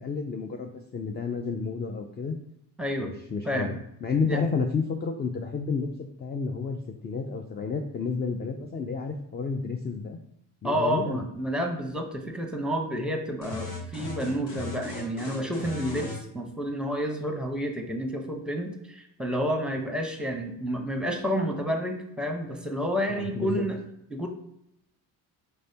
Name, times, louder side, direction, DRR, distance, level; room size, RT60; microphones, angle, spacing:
voice 1, 0.0-2.4 3.0-5.9 6.2-10.2 10.6-11.2 23.1-23.6, left 5 dB, 25° left, 4 dB, 0.3 m, -31 dB
voice 2, 2.8-3.1 3.4-3.7 4.3-4.4 10.6-23.8 24.1-24.3, equal, ahead, 3 dB, 0.8 m, -30 dB
sound 1, 13.4-16.2, left 2 dB, 65° left, 1.2 m, -37 dB
4.4 x 3.2 x 2.7 m, 0.79 s
supercardioid pair, 60°, 46 cm